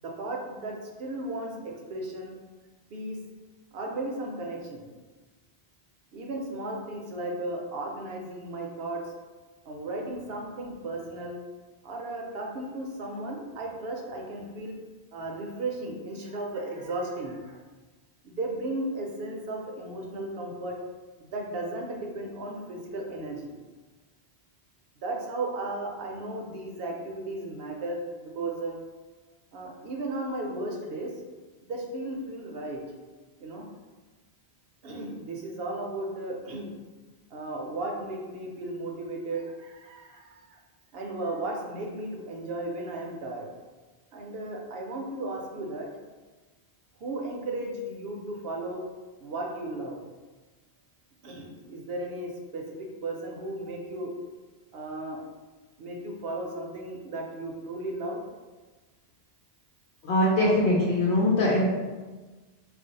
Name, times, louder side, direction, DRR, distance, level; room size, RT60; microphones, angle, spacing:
voice 1, 0.0-2.3 2.9-3.2 3.7-4.9 6.1-9.0 9.7-11.4 11.8-14.8 15.1-17.6 18.2-20.8 21.2-23.6 25.0-28.8 29.5-31.1 31.6-32.8 33.4-33.7 34.8-36.7 37.3-40.6 40.9-43.5 44.1-45.9 47.0-48.8 49.2-50.0 51.2-54.1 54.7-55.2 55.8-58.2, right 2 dB, 70° right, 0 dB, 0.8 m, -35 dB
voice 2, 60.0-61.7, left 1 dB, 85° left, -5 dB, 0.9 m, -22 dB
2.5 x 2.0 x 3.9 m, 1.3 s
omnidirectional pair, 1.1 m